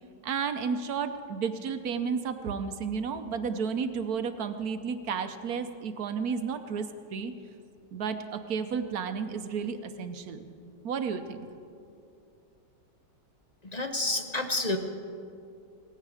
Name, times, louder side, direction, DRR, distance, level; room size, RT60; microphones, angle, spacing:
voice 1, 0.2-7.3 7.9-10.5 10.8-11.5, right 6 dB, 65° right, 9 dB, 1.2 m, -32 dB
voice 2, 13.6-14.8, left 2 dB, 35° left, 5 dB, 0.7 m, -29 dB
19.0 x 16.0 x 4.9 m, 2.5 s
omnidirectional pair, 1.9 m